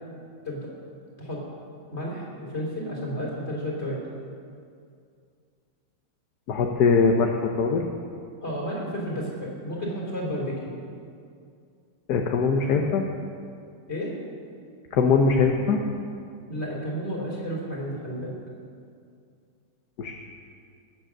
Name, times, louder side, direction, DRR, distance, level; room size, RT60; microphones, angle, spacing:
voice 1, 1.9-4.0 8.4-10.7 13.9-14.1 16.4-18.3, equal, 35° left, -3 dB, 3.5 m, -32 dB
voice 2, 6.5-7.9 12.1-13.0 14.9-15.8 20.0-20.1, left 5 dB, 60° left, 2 dB, 1.3 m, -21 dB
20.5 x 7.6 x 6.3 m, 2.3 s
omnidirectional pair, 2.0 m